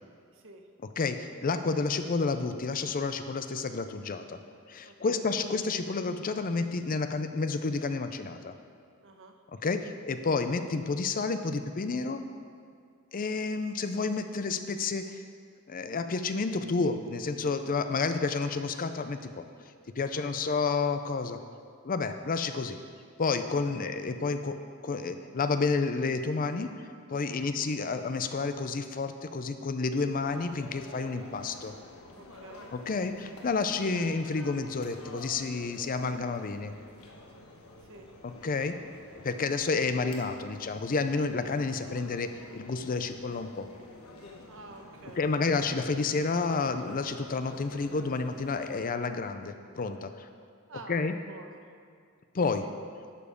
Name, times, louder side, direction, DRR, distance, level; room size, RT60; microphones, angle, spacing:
voice 1, 0.3-0.7 4.8-5.3 9.0-9.4 20.1-20.5 23.8-23.9 27.3-27.5 32.1-32.7 37.8-38.1 44.5-45.3 50.7-51.6 52.6-52.7, right 3 dB, 60° right, 4 dB, 1.0 m, -50 dB
voice 2, 1.0-4.4 4.7-8.5 9.6-12.2 13.1-15.2 15.7-19.4 20.0-21.4 21.8-22.8 23.2-26.7 27.1-31.7 32.7-36.7 38.2-38.8 39.2-43.7 45.2-50.3 50.9-51.2 52.3-52.6, left 4 dB, 40° left, 9 dB, 0.5 m, -30 dB
sound 1, 30.1-48.8, left 2 dB, 75° left, 1.3 m, -50 dB
11.5 x 7.2 x 5.1 m, 2.2 s
head